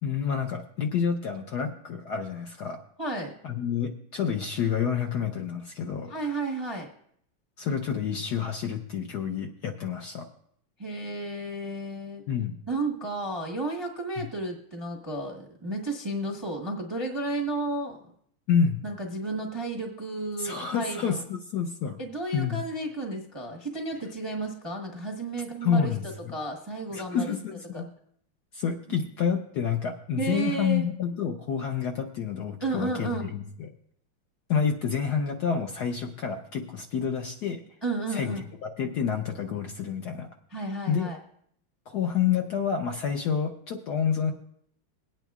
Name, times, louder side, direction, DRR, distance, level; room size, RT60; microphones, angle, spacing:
voice 1, 0.0-2.8 3.4-6.1 7.6-10.3 12.3-12.6 18.5-18.8 20.4-22.0 22.3-22.6 25.6-26.0 26.9-27.9 28.5-33.7 34.5-37.6 38.1-38.4 38.6-40.3 40.9-41.1 41.9-44.3, left 7 dB, 70° left, 4 dB, 1.0 m, -28 dB
voice 2, 3.0-3.3 6.1-6.9 10.8-12.2 12.7-18.0 18.8-21.2 22.0-25.9 26.3-27.3 27.7-27.8 28.9-29.0 30.2-30.9 32.6-33.4 37.8-38.5 40.5-41.2, right 2 dB, 20° right, 1 dB, 0.6 m, -32 dB
22.0 x 9.0 x 2.4 m, 0.68 s
omnidirectional pair, 2.3 m